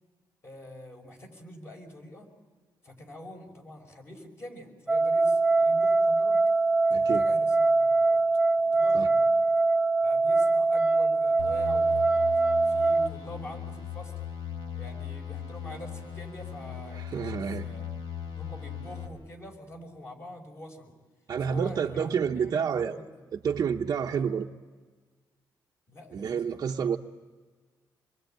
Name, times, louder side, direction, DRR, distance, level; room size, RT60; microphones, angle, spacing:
voice 1, 0.4-2.3 2.8-6.4 6.9-8.2 8.6-9.5 10.0-14.1 14.7-17.9 18.2-20.9 21.4-23.2 24.1-24.4 25.9-27.0, left 1 dB, 35° left, 3 dB, 5.5 m, -46 dB
sound 1, 4.9-13.1, right 3 dB, ahead, 1.2 m, -23 dB
voice 2, 6.9-7.2 8.9-9.1 16.9-17.7 21.3-23.0 23.3-24.5 26.1-27.0, right 7 dB, 45° right, 0 dB, 0.8 m, -29 dB
sound 2, 11.4-19.1, left 8 dB, 75° left, 5.2 m, -38 dB
27.0 x 22.5 x 9.1 m, 1.5 s
cardioid pair, 150°, 8 cm